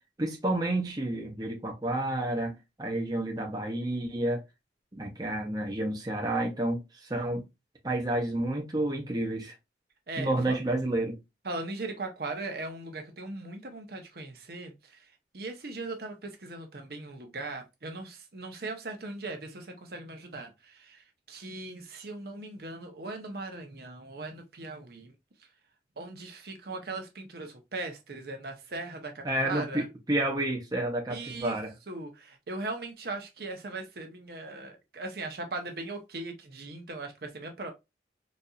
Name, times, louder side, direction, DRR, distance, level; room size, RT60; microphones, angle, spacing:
voice 1, 0.2-4.4 4.9-7.4 7.8-9.5 10.2-11.2 29.2-31.7, right 1 dB, 20° right, 0.7 m, -30 dB
voice 2, 10.1-10.6 11.4-15.0 15.3-25.1 26.0-29.8 31.1-31.6 31.9-37.7, right 2 dB, 55° right, 0.8 m, -39 dB
4.1 x 2.6 x 2.3 m
head